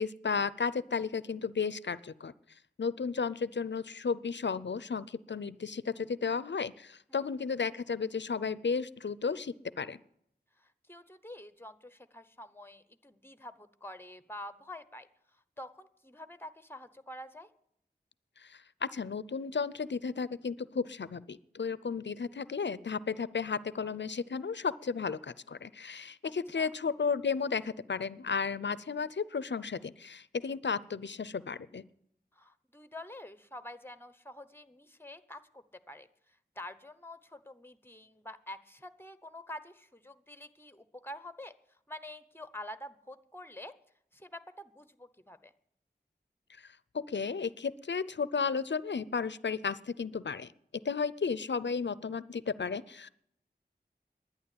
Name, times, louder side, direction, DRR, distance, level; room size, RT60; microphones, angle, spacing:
voice 1, 0.0-2.3 2.8-10.0 18.4-31.8 46.6-46.7 46.9-50.5 50.8-53.1, left 5 dB, 85° left, 18 dB, 0.5 m, -33 dB
voice 2, 10.6-17.5 26.2-26.7 32.3-43.7 44.1-45.5, left 1 dB, 10° left, 13 dB, 0.9 m, -47 dB
11.0 x 9.8 x 8.5 m, 0.73 s
wide cardioid pair, 45°, 18 cm